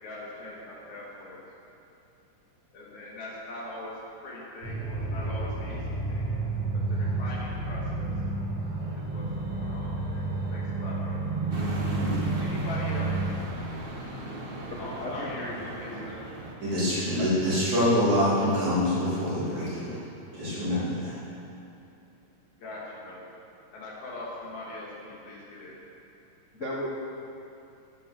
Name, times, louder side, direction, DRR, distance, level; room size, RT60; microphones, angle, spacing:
voice 1, 0.0-1.4 2.7-5.8 6.1-6.2 6.9-8.1 9.1-11.2 12.4-13.2 14.8-16.2 22.6-23.3 23.7-25.8, left 2 dB, 75° left, -6 dB, 3.9 m, -41 dB
sound 1, 4.6-13.3, right 3 dB, 55° right, 3.0 m, -30 dB
sound 2, 11.5-16.5, right 1 dB, 25° right, 1.2 m, -38 dB
voice 2, 14.8-15.6 15.9-16.0 17.2-17.4 23.2-23.3 26.5-26.9, left 1 dB, 35° left, -6 dB, 1.2 m, -36 dB
voice 3, 16.6-20.0 20.3-21.2, left 1 dB, 75° right, -11 dB, 5.6 m, -25 dB
17.0 x 8.6 x 6.5 m, 2.7 s
omnidirectional pair, 3.4 m